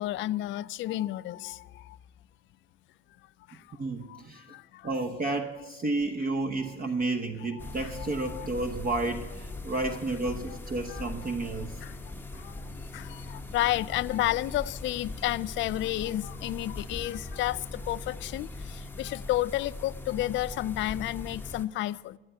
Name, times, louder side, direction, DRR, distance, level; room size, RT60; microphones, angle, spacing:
voice 1, 0.0-2.0 3.5-3.6 4.1-4.2 4.5-4.9 6.6-6.7 7.5-8.5 10.5-10.6 10.9-11.5 11.8-11.9 12.4-12.6 12.9-22.2, left 15 dB, 40° left, 0.4 m, -32 dB
voice 2, 3.8-4.5 4.8-11.8, right 2 dB, 30° right, 0.9 m, -31 dB
sound 1, 7.6-21.6, left 2 dB, 5° left, 0.9 m, -40 dB
15.0 x 7.8 x 9.2 m
hypercardioid pair, 75°, 30 cm